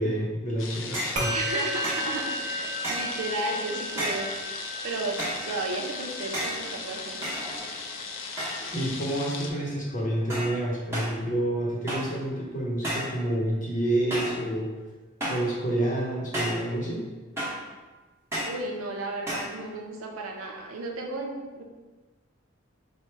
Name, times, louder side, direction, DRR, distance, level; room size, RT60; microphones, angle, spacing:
voice 1, 0.0-1.4 8.7-14.7 15.3-17.0, right 1 dB, 40° left, -3 dB, 0.7 m, -28 dB
sound 1, 0.6-9.5, left 4 dB, 70° left, 0.4 m, -37 dB
sound 2, 0.9-1.2 1.8-2.1 2.8-3.2 4.0-4.3 5.2-5.5 6.3-6.6 7.2-7.9 8.4-8.8 9.1-9.5 10.3-10.6 10.9-11.2 11.9-12.2 12.8-13.2 14.1-14.4 15.2-15.5 16.3-16.7 17.4-17.7 18.3-18.6 19.3-19.6, right 1 dB, 15° right, 0.9 m, -32 dB
Musical instrument, 1.2-10.7, equal, 35° right, 1.0 m, -36 dB
voice 2, 1.3-4.3 4.8-7.3 18.4-21.6, right 2 dB, 90° right, 1 dB, 0.6 m, -33 dB
4.4 x 2.1 x 3.2 m, 1.2 s
head